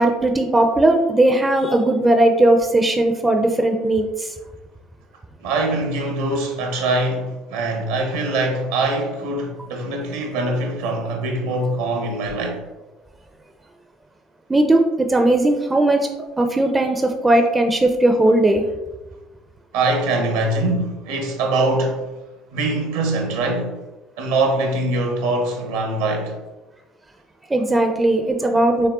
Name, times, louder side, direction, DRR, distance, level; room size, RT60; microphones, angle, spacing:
voice 1, 0.0-4.3 14.5-16.0 16.4-18.7 27.5-28.9, right 1 dB, 15° right, 0.5 m, -17 dB
voice 2, 5.4-12.6 19.7-22.1 22.5-23.8 24.2-26.3, right 2 dB, 70° right, 0.9 m, -23 dB
5.4 x 3.4 x 2.4 m
figure-of-eight pair, 65°, 0 cm